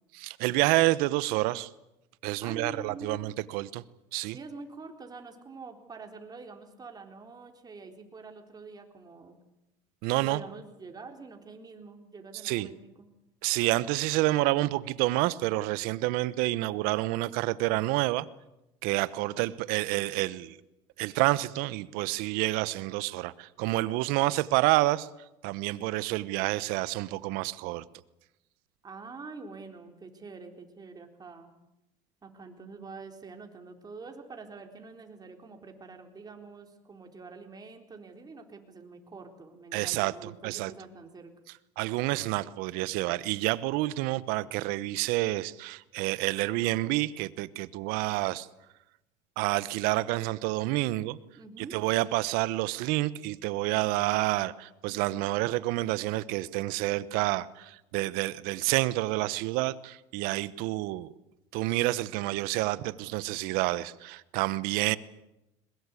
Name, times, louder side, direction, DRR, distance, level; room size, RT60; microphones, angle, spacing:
voice 1, 0.1-1.7 2.2-3.8 4.1-4.4 10.0-10.4 12.4-12.7 13.4-18.3 18.8-20.6 21.0-25.1 25.4-27.8 39.7-40.7 41.8-48.5 49.4-51.2 51.6-61.1 61.5-65.0, right 18 dB, 70° right, 18 dB, 1.0 m, -28 dB
voice 2, 2.4-3.3 4.3-9.4 10.2-13.1 28.8-31.5 32.2-41.3 51.4-51.8, right 4 dB, 25° right, 4 dB, 4.0 m, -46 dB
22.5 x 21.0 x 8.4 m, 0.92 s
supercardioid pair, 100°, 16 cm